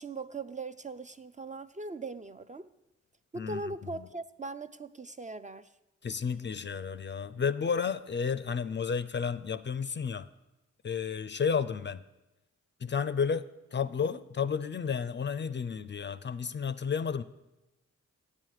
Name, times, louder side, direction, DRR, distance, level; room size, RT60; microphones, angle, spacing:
voice 1, 0.0-2.7 3.3-5.7, right 3 dB, 25° right, 11 dB, 0.4 m, -40 dB
voice 2, 6.0-10.3 10.8-12.0 12.8-13.5 13.7-17.2, left 6 dB, 35° left, 13 dB, 0.4 m, -32 dB
8.6 x 7.5 x 4.8 m, 0.97 s
supercardioid pair, 45°, 31 cm